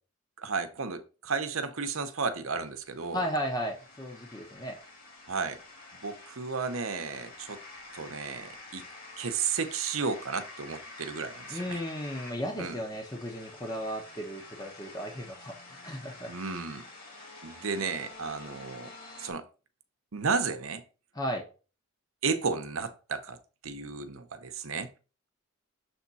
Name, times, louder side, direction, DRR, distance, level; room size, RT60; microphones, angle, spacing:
voice 1, 0.4-3.2 5.3-5.6 5.9-7.6 7.9-8.8 9.2-11.8 12.6-12.8 16.3-16.9 17.4-18.9 19.2-19.5 20.1-20.8 22.2-23.4 23.6-24.9, right 5 dB, 70° right, 0.8 m, -33 dB
sound 1, 2.3-19.3, left 2 dB, 40° left, 2.1 m, -48 dB
voice 2, 3.1-4.8 11.5-16.3 21.1-21.4, equal, 15° left, 0.9 m, -35 dB
6.9 x 3.6 x 4.1 m
head